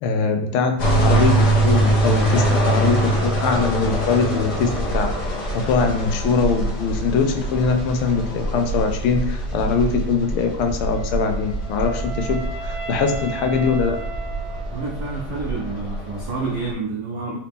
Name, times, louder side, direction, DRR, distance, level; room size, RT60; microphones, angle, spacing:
voice 1, 0.0-14.0, left 5 dB, 80° left, 5 dB, 1.4 m, -22 dB
sound 1, 0.8-16.7, right 1 dB, 55° left, 1.3 m, -24 dB
Wind instrument woodwind instrument, 10.9-15.1, right 4 dB, 10° left, 0.7 m, -35 dB
voice 2, 14.7-17.4, right 3 dB, 90° right, -2 dB, 0.8 m, -28 dB
3.9 x 2.9 x 3.4 m, 0.71 s
omnidirectional pair, 2.4 m